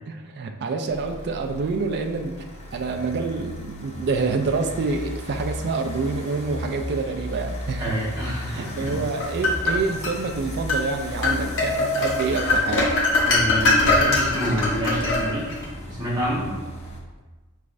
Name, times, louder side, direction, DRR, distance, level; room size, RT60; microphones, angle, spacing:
voice 1, 0.1-2.5 2.7-8.0 8.5-12.9, right 4 dB, 50° right, 5 dB, 0.3 m, -27 dB
sound 1, 0.9-17.0, equal, 30° left, 0.6 m, -36 dB
voice 2, 7.6-9.0 13.2-16.5, equal, 20° right, -7 dB, 1.3 m, -28 dB
sound 2, 8.9-10.2 10.7-10.9 11.2-15.7, left 2 dB, 60° left, 0.9 m, -22 dB
4.8 x 3.2 x 2.5 m, 1.2 s
head